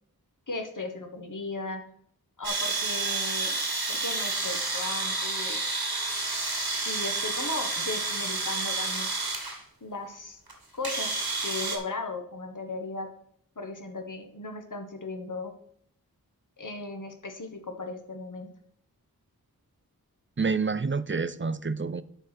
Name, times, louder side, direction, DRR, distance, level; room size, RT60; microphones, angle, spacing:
voice 1, 0.5-1.8 2.4-3.6 3.9-5.7 6.8-9.1 9.8-10.4 10.7-13.1 13.6-15.5 16.6-18.5, left 2 dB, 55° left, 1.3 m, -36 dB
sound 1, 2.4-9.6 10.5-10.6 10.8-11.8, right 3 dB, 85° right, 1.9 m, -30 dB
voice 2, 20.4-22.0, right 4 dB, 30° right, 0.5 m, -28 dB
10.5 x 4.1 x 6.0 m
wide cardioid pair, 50°, 37 cm